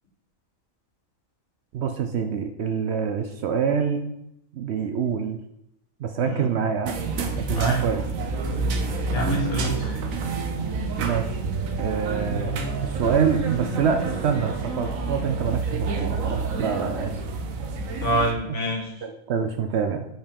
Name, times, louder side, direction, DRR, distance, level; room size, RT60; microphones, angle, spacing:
voice 1, 1.7-4.1 4.5-5.4 6.0-7.0 7.5-8.0 11.0-11.4 11.7-12.5 12.8-17.2 18.5-18.6 19.0-20.1, right 7 dB, 65° right, 6 dB, 0.7 m, -26 dB
sound 1, 6.9-18.3, right 4 dB, 80° right, 1.2 m, -28 dB
voice 2, 9.1-10.0 18.0-19.1, equal, 60° left, -2 dB, 1.9 m, -26 dB
5.5 x 4.4 x 5.2 m, 0.81 s
omnidirectional pair, 1.4 m